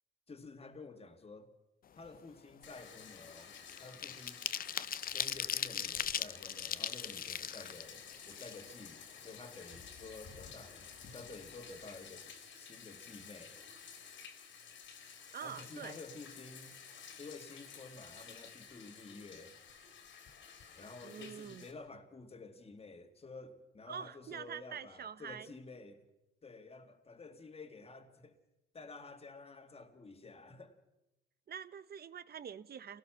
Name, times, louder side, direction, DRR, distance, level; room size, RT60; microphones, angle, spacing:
voice 1, 0.3-1.5 1.9-4.4 5.1-10.9 11.1-13.6 15.4-16.8 17.2-19.6 20.8-26.1 26.4-28.4 28.7-30.8, left 3 dB, 30° left, 2.2 m, -51 dB
sound 1, 2.0-2.2 2.5-9.0 9.3-9.4 9.8-10.7 11.0-11.2 11.5-11.8, left 9 dB, 45° left, 0.7 m, -39 dB
Bathtub (filling or washing), 2.6-21.7, left 6 dB, 70° left, 3.3 m, -53 dB
voice 2, 15.3-16.0 21.0-21.7 23.9-25.5 31.5-33.0, right 7 dB, 50° right, 1.2 m, -45 dB
26.5 x 18.0 x 5.9 m
cardioid pair, 90°, 20 cm